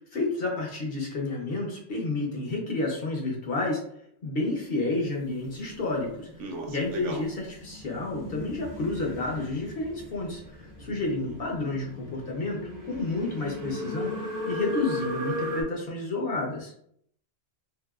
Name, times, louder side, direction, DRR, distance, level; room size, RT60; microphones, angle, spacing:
voice 1, 0.0-3.8 4.2-6.3 6.7-14.1 14.5-16.7, left 2 dB, 60° left, -1 dB, 0.8 m, -30 dB
sound 1, 5.2-15.6, left 1 dB, 25° right, 0.4 m, -37 dB
voice 2, 6.4-7.2 11.2-11.3, right 3 dB, 75° right, 1 dB, 0.9 m, -36 dB
2.8 x 2.6 x 2.3 m, 0.68 s
omnidirectional pair, 1.2 m